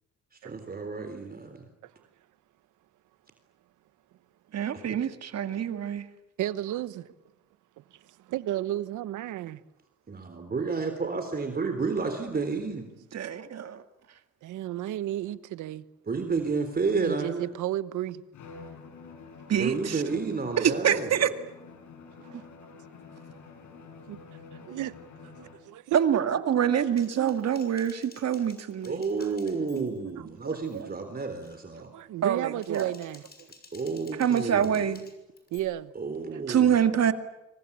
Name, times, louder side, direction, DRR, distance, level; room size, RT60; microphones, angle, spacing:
voice 1, 0.4-1.6 10.1-12.9 16.1-17.5 19.5-21.3 28.8-31.9 33.7-34.9 36.0-36.9, right 4 dB, 30° right, 3.7 m, -31 dB
voice 2, 4.5-6.0 13.1-13.8 19.5-20.0 20.6-21.3 25.9-29.0 29.7-29.9 32.2-32.9 34.2-35.0 36.5-37.1, right 8 dB, 55° right, 2.1 m, -25 dB
voice 3, 6.4-7.1 7.9-9.6 14.4-15.8 16.9-18.2 22.3-22.4 24.1-24.2 24.5-24.9 25.2-26.2 29.2-29.3 30.2-30.3 31.8-33.2 35.5-35.9 36.3-36.4, right 13 dB, 85° right, 1.2 m, -33 dB
Bowed string instrument, 18.3-25.7, left 4 dB, 75° left, 6.1 m, -48 dB
Typing, 27.0-30.1 30.5-30.8 31.2-31.6 32.4-35.6, left 3 dB, 30° left, 6.0 m, -54 dB
26.5 x 25.0 x 8.6 m
cardioid pair, 90°, 30 cm